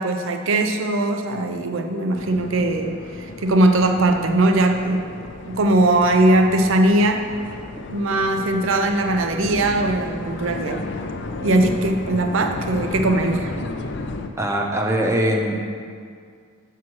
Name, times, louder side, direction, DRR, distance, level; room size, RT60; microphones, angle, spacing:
voice 1, 0.0-5.1 5.5-7.3 7.9-10.9 11.4-13.5, right 1 dB, 75° right, 5 dB, 0.5 m, -20 dB
sound 1, 2.1-14.3, left 2 dB, 60° left, 0.5 m, -33 dB
voice 2, 14.4-15.6, right 1 dB, 15° right, 1 dB, 0.7 m, -21 dB
7.2 x 4.6 x 6.1 m, 2.2 s
head